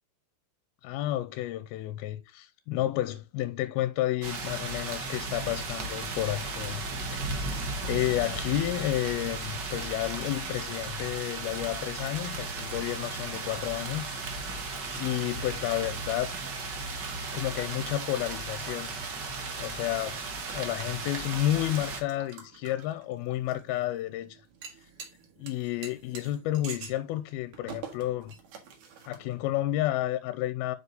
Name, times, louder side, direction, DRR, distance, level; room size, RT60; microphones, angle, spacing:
voice 1, 0.8-6.8 7.1-7.5 7.8-14.5 15.0-16.4 17.3-18.9 19.6-20.2 20.5-24.4 25.4-28.3 29.1-30.8, left 14 dB, 90° left, 2.5 m, -31 dB
sound 1, 4.2-22.0, right 3 dB, 85° right, 0.9 m, -35 dB
sound 2, 19.8-29.5, right 6 dB, 60° right, 2.9 m, -48 dB
8.2 x 4.9 x 3.9 m
omnidirectional pair, 4.4 m